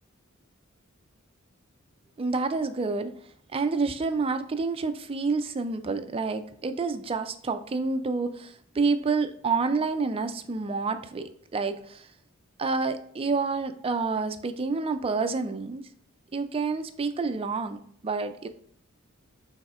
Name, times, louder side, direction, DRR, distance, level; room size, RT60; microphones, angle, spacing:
voice 1, 2.2-3.1 3.5-12.1 12.6-15.9 16.3-18.5, right 4 dB, 25° right, 9 dB, 0.4 m, -28 dB
6.0 x 3.5 x 2.4 m, 0.64 s
head